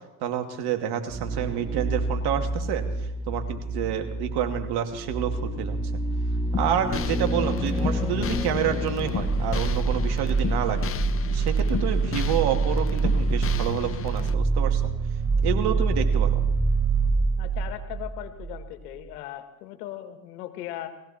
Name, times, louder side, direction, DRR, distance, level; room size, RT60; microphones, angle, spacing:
voice 1, 0.2-2.8 3.3-5.8 6.5-10.9 11.3-14.8 15.4-16.4, right 9 dB, 60° right, 5 dB, 2.5 m, -28 dB
sound 1, 1.1-18.6 18.9-19.0, right 3 dB, 10° right, 2.3 m, -26 dB
sound 2, 6.5-14.3, left 9 dB, 30° left, 0.9 m, -33 dB
voice 2, 17.4-20.9, left 13 dB, 80° left, 8 dB, 2.0 m, -38 dB
20.0 x 16.0 x 4.4 m, 1.0 s
hypercardioid pair, 85°, 45 cm